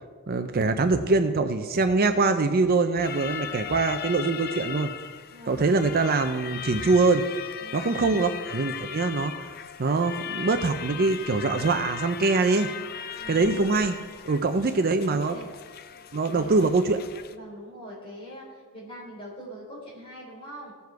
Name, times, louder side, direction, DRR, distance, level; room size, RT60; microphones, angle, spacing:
voice 1, 0.3-4.9 5.5-7.2 7.7-9.5 9.8-12.7 13.3-14.0 14.3-15.4 16.1-17.0, right 3 dB, 45° right, 8 dB, 0.5 m, -23 dB
sound 1, 3.0-17.3, left 9 dB, 45° left, 0.5 m, -38 dB
voice 2, 5.3-5.7 7.6-8.4 13.2-13.8 15.3-15.5 16.3-16.7 17.3-20.7, right 1 dB, 25° left, -5 dB, 4.4 m, -43 dB
17.5 x 7.0 x 4.7 m, 1.5 s
head